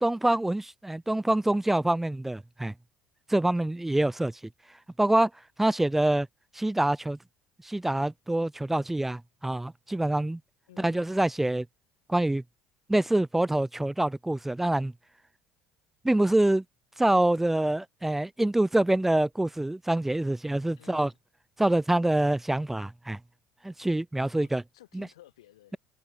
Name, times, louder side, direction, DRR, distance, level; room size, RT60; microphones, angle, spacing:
voice 1, 0.0-2.7 3.3-4.3 5.0-5.3 5.6-6.3 6.5-7.2 7.6-10.4 10.8-11.7 12.1-12.4 12.9-14.9 16.0-16.6 17.0-21.1 21.6-23.2 23.6-24.6 24.9-25.1, right 1 dB, 10° right, 0.4 m, -25 dB
voice 2, 10.7-11.1 20.8-21.2 24.4-25.8, left 14 dB, 80° left, 7.2 m, -55 dB
hypercardioid pair, 65°, 3 cm